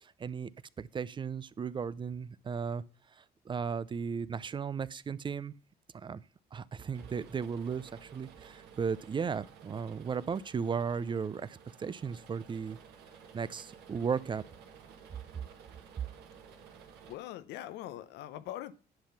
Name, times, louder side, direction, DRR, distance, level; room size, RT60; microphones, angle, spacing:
voice 1, 0.0-0.5 0.8-2.8 3.2-5.5 5.9-6.2 6.5-12.8 13.3-14.4, right 6 dB, 30° right, 0.5 m, -35 dB
sound 1, 6.9-17.2, right 7 dB, 85° right, 2.1 m, -54 dB
voice 2, 17.1-18.7, left 13 dB, 85° left, 0.8 m, -42 dB
10.5 x 5.8 x 5.7 m
cardioid pair, 110°, 17 cm